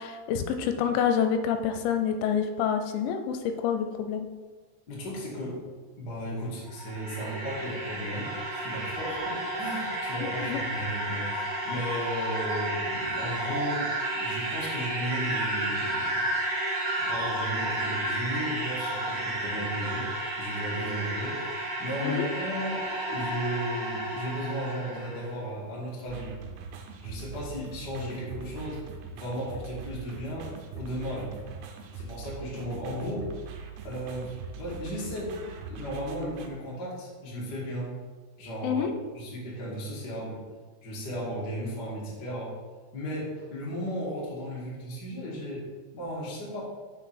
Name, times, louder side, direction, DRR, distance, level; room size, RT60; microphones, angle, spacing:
voice 1, 0.0-4.3 10.2-10.6 22.0-22.3 38.6-38.9, left 7 dB, 85° left, 6 dB, 2.8 m, -27 dB
voice 2, 4.9-5.6 6.0-16.3 17.0-21.4 21.8-26.3 27.0-28.8 29.1-31.3 31.9-33.3 33.8-35.4 35.6-37.9 38.4-38.8 39.1-40.4 40.8-42.6 42.9-45.6 45.9-46.6, equal, 45° left, -5 dB, 1.4 m, -35 dB
sound 1, 6.6-25.3, right 1 dB, 70° right, 1.0 m, -32 dB
sound 2, 26.1-36.5, right 6 dB, 85° right, 2.9 m, -42 dB
6.4 x 4.7 x 5.8 m, 1.4 s
omnidirectional pair, 5.0 m